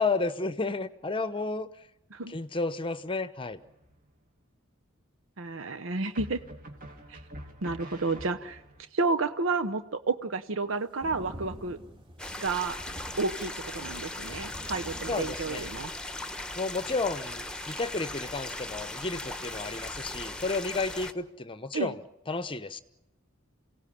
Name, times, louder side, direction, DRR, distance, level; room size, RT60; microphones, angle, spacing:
voice 1, 0.0-1.7 2.3-3.6 15.1-15.6 16.6-22.0 22.3-22.8, left 3 dB, 25° left, 13 dB, 0.9 m, -32 dB
sound 1, 3.5-4.1 6.1-8.8, equal, 45° right, 2.9 m, -45 dB
voice 2, 5.4-6.4 7.1-7.2 7.6-8.6 8.9-11.8 12.4-12.8 13.2-15.9 21.7-21.9, right 3 dB, 70° right, 10 dB, 0.9 m, -31 dB
sound 2, 10.7-15.8, equal, 25° right, 3.2 m, -46 dB
sound 3, 12.2-21.1, left 2 dB, 5° left, 1.2 m, -38 dB
28.5 x 17.5 x 8.7 m, 0.97 s
head